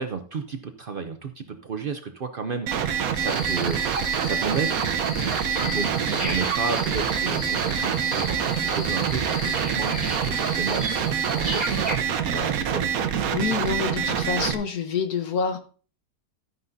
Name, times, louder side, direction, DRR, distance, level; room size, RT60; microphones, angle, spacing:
voice 1, 0.0-3.8 4.2-4.8 5.2-9.9 10.3-13.0, right 5 dB, 90° right, 7 dB, 0.4 m, -32 dB
sound 1, 2.7-14.5, right 8 dB, 65° right, 1.1 m, -26 dB
sound 2, 3.1-11.9, equal, 80° left, 6.2 m, -33 dB
voice 2, 13.3-15.6, left 6 dB, 60° left, 8 dB, 1.3 m, -27 dB
12.0 x 9.6 x 2.6 m, 0.39 s
omnidirectional pair, 1.8 m